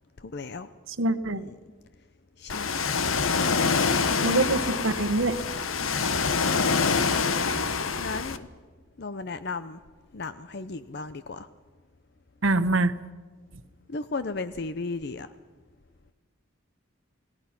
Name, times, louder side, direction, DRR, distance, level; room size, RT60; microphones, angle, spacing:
voice 1, 0.2-0.7 1.3-1.5 2.4-2.9 4.1-4.5 5.8-6.3 7.9-8.5 9.0-9.8 10.1-11.5 13.9-15.3, left 3 dB, 55° left, 0.6 m, -35 dB
voice 2, 1.0-1.4 4.2-5.3 12.4-12.9, right 2 dB, 75° right, 1.1 m, -24 dB
Ocean, 2.5-8.4, left 5 dB, 85° left, 1.1 m, -26 dB
29.0 x 18.5 x 5.9 m
head